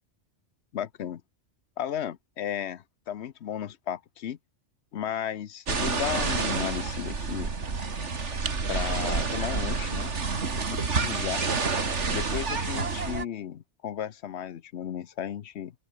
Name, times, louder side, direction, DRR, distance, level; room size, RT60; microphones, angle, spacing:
voice 1, 0.7-1.2 1.8-4.4 4.9-7.5 8.7-10.1 10.7-11.4 12.1-15.7, left 10 dB, 70° left, 1.1 m, -34 dB
sound 1, 5.7-13.3, right 4 dB, 85° right, 2.5 m, -29 dB
open air
omnidirectional pair, 1.2 m